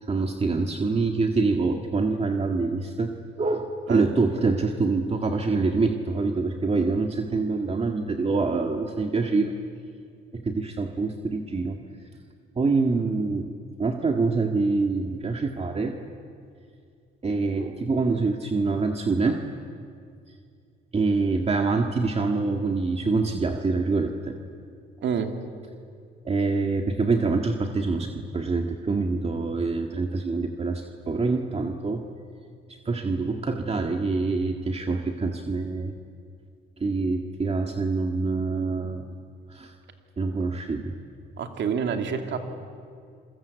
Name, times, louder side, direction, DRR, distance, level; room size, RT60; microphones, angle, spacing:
voice 1, 0.0-9.5 10.3-11.8 12.6-16.0 17.2-19.4 20.9-24.3 26.2-32.0 32.9-35.9 36.8-39.1 39.5-39.7 40.2-40.9, right 3 dB, 30° right, 4 dB, 1.8 m, -25 dB
voice 2, 41.4-42.4, right 7 dB, 65° right, 5 dB, 2.8 m, -27 dB
27.5 x 22.5 x 8.2 m, 2.3 s
cardioid pair, 90°, 20 cm